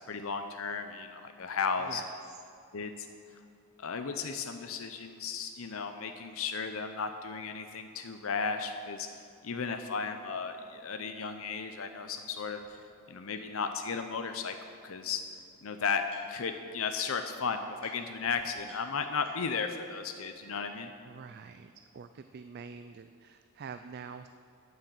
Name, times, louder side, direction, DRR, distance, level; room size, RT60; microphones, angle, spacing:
voice 1, 0.1-2.0 2.7-3.1 3.8-9.1 9.4-12.6 13.1-14.5 14.8-15.2 15.6-16.0 16.3-20.9, left 5 dB, 65° left, 6 dB, 0.6 m, -35 dB
sound 1, 12.6-12.7 13.3-13.4 14.7-14.8 15.0-16.6 16.9-17.4 17.8-17.9 18.2-18.3 18.6-19.7, right 2 dB, 65° right, 2.8 m, -56 dB
voice 2, 21.0-24.3, right 5 dB, 45° right, 9 dB, 0.3 m, -46 dB
9.3 x 9.1 x 7.5 m, 2.5 s
head